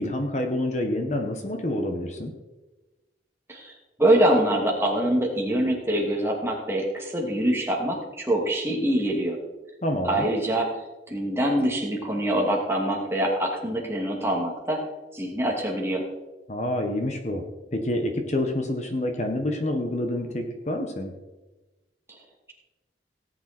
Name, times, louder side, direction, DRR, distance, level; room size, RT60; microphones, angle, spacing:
voice 1, 0.0-2.3 9.8-10.3 16.5-17.4 17.7-21.1, left 1 dB, 40° left, 4 dB, 1.5 m, -27 dB
voice 2, 3.5-9.4 10.0-10.7 11.1-14.8 15.1-16.0 22.1-22.2, right 1 dB, 15° right, -1 dB, 2.6 m, -24 dB
17.5 x 9.4 x 4.5 m, 1.1 s
head